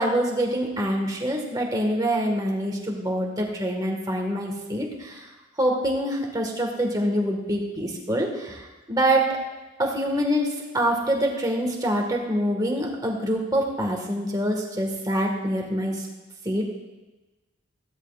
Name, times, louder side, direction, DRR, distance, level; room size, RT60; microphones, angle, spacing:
voice 1, 0.0-5.3 5.6-9.4 9.8-16.1 16.4-16.6, right 1 dB, 20° right, 0 dB, 1.6 m, -25 dB
15.5 x 12.0 x 2.5 m, 1.2 s
head